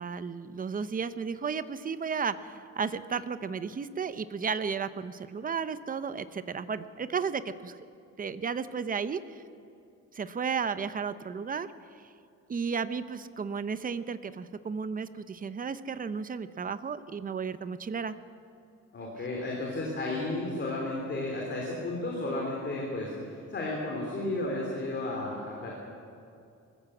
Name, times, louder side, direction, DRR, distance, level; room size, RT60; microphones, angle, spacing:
voice 1, 0.0-7.8 8.2-9.4 10.1-11.7 12.5-18.2, right 6 dB, 30° right, 13 dB, 0.7 m, -33 dB
voice 2, 18.9-25.8, left 2 dB, 35° left, -2 dB, 3.4 m, -33 dB
22.5 x 15.0 x 7.9 m, 2.5 s
wide cardioid pair, 160°, 30 cm